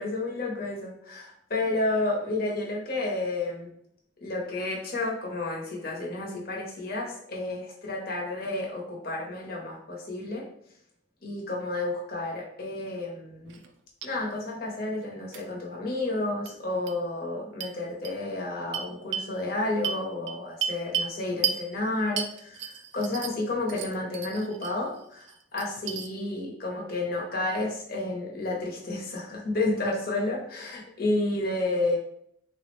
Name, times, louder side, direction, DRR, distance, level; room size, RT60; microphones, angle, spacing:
voice 1, 0.0-3.7 4.2-10.5 11.2-13.6 14.0-32.0, left 2 dB, 50° left, -2 dB, 0.8 m, -31 dB
sound 1, 13.5-13.7 14.0-14.1 15.3-15.4 16.5-16.6 16.9-17.0 17.6-17.7 18.0-18.1 18.7-19.3 19.8-21.1 21.4-21.6 22.2-23.4 23.7-24.7 25.1-26.1, right 8 dB, 70° right, 0.3 m, -32 dB
3.3 x 2.1 x 3.0 m, 0.71 s
head